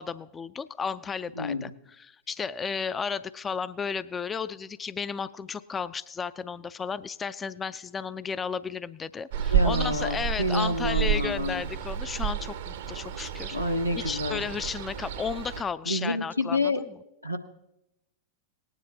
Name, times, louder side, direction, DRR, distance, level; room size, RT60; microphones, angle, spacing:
voice 1, 0.0-1.7 2.0-13.6 14.0-16.6, left 6 dB, 20° left, 15 dB, 0.3 m, -33 dB
voice 2, 1.4-1.7 9.5-11.6 13.5-14.4 15.9-16.8 17.2-17.4, left 1 dB, 90° left, 4 dB, 0.8 m, -28 dB
Ocean, 9.3-15.6, right 8 dB, 55° right, 0.7 m, -30 dB
19.0 x 9.7 x 2.8 m, 0.86 s
figure-of-eight pair, 90°, 0 cm